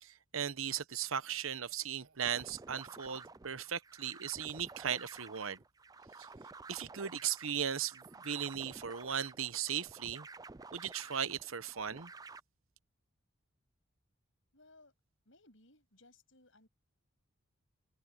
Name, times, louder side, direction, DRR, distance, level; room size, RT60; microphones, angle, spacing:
voice 1, 0.0-5.6 6.2-6.3 6.7-10.3 10.7-12.1, right 8 dB, 75° right, 1.0 m, -37 dB
sound 1, 2.2-12.4, right 3 dB, 15° right, 0.4 m, -52 dB
voice 2, 14.5-14.9 15.3-16.7, left 2 dB, 60° left, 7.7 m, -62 dB
head